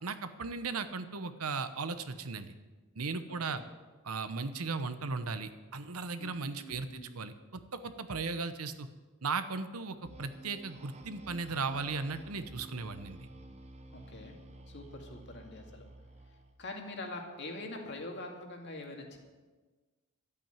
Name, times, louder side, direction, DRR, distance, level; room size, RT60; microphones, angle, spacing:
voice 1, 0.0-2.5 3.0-3.6 4.0-8.9 9.2-13.3, right 4 dB, 85° right, 11 dB, 0.9 m, -37 dB
voice 2, 3.3-3.7 6.2-7.1 13.9-14.4 14.7-15.9 16.6-19.2, left 2 dB, 55° left, 2 dB, 2.2 m, -44 dB
sound 1, 10.0-16.6, right 1 dB, 30° right, 0.9 m, -52 dB
12.0 x 8.4 x 9.1 m, 1.3 s
head